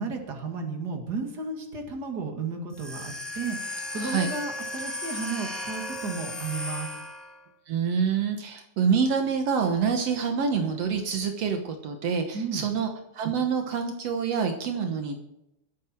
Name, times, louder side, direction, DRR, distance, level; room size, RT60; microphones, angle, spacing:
voice 1, 0.0-6.9 12.3-12.7, right 4 dB, 30° right, 3 dB, 2.0 m, -33 dB
sound 1, 2.7-7.5, left 1 dB, ahead, 0.4 m, -35 dB
voice 2, 4.0-4.3 7.7-15.2, right 6 dB, 85° right, 4 dB, 1.4 m, -27 dB
22.0 x 8.8 x 4.6 m, 0.84 s
omnidirectional pair, 4.8 m